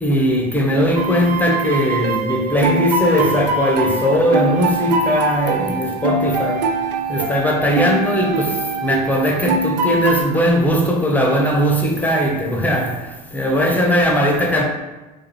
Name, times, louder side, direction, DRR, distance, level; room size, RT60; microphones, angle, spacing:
voice 1, 0.0-6.7 7.1-14.6, equal, 10° left, 0.8 m, -19 dB
sound 1, 1.0-10.2, right 3 dB, 90° right, 0.4 m, -22 dB
4.6 x 2.4 x 3.0 m
hypercardioid pair, 85°, 21 cm